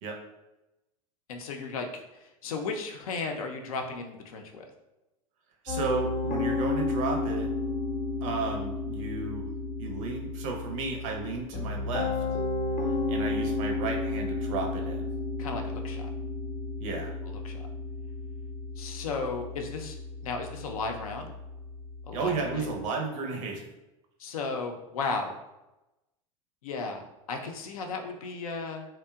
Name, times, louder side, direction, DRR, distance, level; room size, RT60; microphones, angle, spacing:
voice 1, 1.3-4.7 15.4-16.1 17.2-17.6 18.8-20.0 20.2-21.3 22.1-22.7 24.2-25.4 26.6-28.9, left 4 dB, 80° left, 4 dB, 0.4 m, -35 dB
voice 2, 5.6-7.5 8.2-9.5 9.8-12.2 13.1-15.1 16.8-17.1 22.1-23.6, right 4 dB, 65° right, 2 dB, 0.6 m, -33 dB
Piano, 5.7-22.8, left 3 dB, 40° left, 0.6 m, -33 dB
2.7 x 2.1 x 2.2 m, 0.96 s
hypercardioid pair, 90°, 18 cm